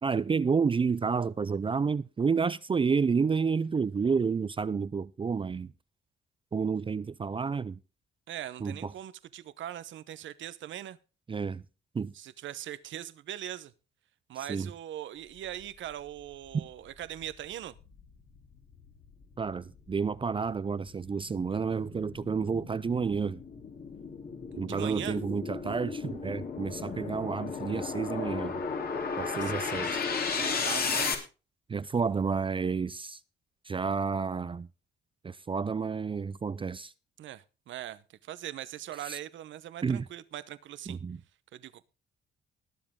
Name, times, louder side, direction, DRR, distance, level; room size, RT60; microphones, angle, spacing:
voice 1, 0.0-5.7 6.5-7.8 8.6-8.9 11.3-11.6 11.9-12.1 14.5-14.7 16.5-16.6 19.4-23.4 24.5-28.6 29.2-30.0 31.7-33.2 33.6-34.7 35.2-36.9 39.0-39.2 39.8-40.1 40.9-41.2, right 5 dB, 25° right, 0.5 m, -30 dB
voice 2, 8.3-11.0 12.1-13.7 14.3-17.7 24.5-25.2 29.3-31.2 37.2-41.0 41.5-41.9, right 12 dB, 70° right, 1.0 m, -41 dB
sound 1, 16.4-16.5 17.0-31.1, left 5 dB, 50° left, 3.2 m, -35 dB
19.5 x 7.6 x 3.7 m
cardioid pair, 90°, 20 cm